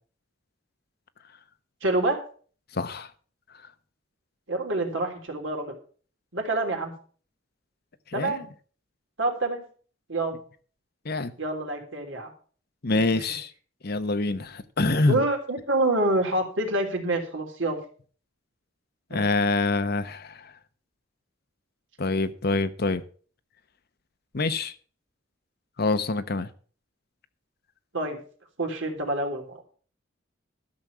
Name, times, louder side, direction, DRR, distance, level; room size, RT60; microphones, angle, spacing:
voice 1, 1.8-2.2 4.5-5.7 6.3-6.9 8.1-8.5 9.2-9.6 10.1-10.4 11.4-12.3 12.9-13.1 15.1-17.8 19.1-19.2 27.9-28.2 28.6-29.6, right 2 dB, 70° right, 3.3 m, -27 dB
voice 2, 2.7-3.1 8.2-8.4 11.0-11.3 12.8-13.5 13.8-15.2 19.1-20.5 22.0-23.0 24.3-24.7 25.8-26.5, left 3 dB, 55° left, 0.9 m, -25 dB
12.5 x 6.3 x 6.8 m
head